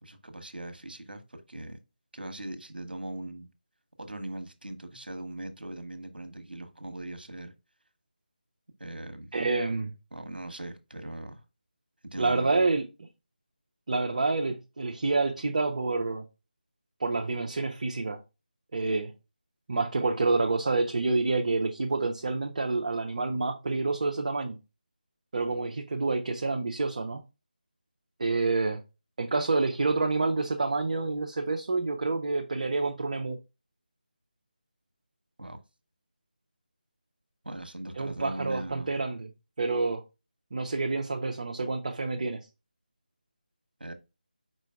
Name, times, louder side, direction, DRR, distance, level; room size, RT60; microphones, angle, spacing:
voice 1, 0.0-1.8 2.1-3.5 4.0-7.5 8.8-9.3 10.1-11.4 12.0-12.7 35.4-35.6 37.4-38.9 43.8-43.9, right 1 dB, 75° right, 1.0 m, -40 dB
voice 2, 9.3-9.9 12.2-12.8 13.9-16.2 17.0-18.2 18.7-19.1 19.7-24.6 25.3-27.2 28.2-28.8 29.2-33.4 38.0-39.3 39.6-40.0 40.5-42.5, right 3 dB, 45° right, 0.6 m, -28 dB
5.0 x 4.5 x 2.3 m
figure-of-eight pair, 160°, 5 cm